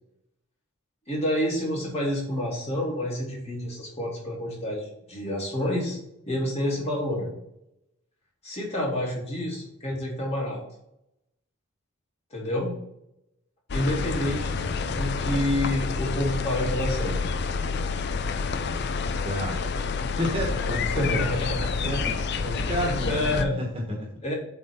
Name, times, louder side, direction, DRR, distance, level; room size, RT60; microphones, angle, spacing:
voice 1, 1.1-6.0 6.3-7.3 8.4-10.6 12.3-12.8 13.7-17.2 20.9-21.9 22.3-23.6 24.2-24.3, left 1 dB, 30° left, -4 dB, 2.5 m, -28 dB
sound 1, 13.7-23.4, left 4 dB, 50° left, 0.5 m, -28 dB
voice 2, 19.2-19.6 20.2-21.3 21.8-23.1 23.6-24.1, equal, 25° right, -1 dB, 1.3 m, -30 dB
7.7 x 3.4 x 5.4 m, 0.82 s
head